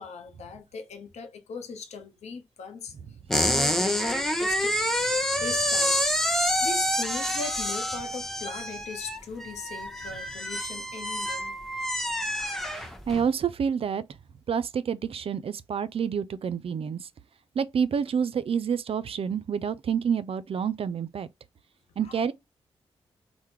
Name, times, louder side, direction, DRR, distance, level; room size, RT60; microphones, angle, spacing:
voice 1, 0.0-3.0 3.3-4.1 4.4-4.8 5.4-6.4 6.6-11.6 22.0-22.2, left 5 dB, 75° left, 0.7 m, -39 dB
sound 1, 3.3-13.3, equal, 5° left, 0.7 m, -27 dB
voice 2, 12.7-14.0 14.5-17.1 17.6-21.3 22.0-22.3, right 7 dB, 55° right, 0.4 m, -28 dB
3.4 x 2.1 x 2.9 m
supercardioid pair, 40°, 12 cm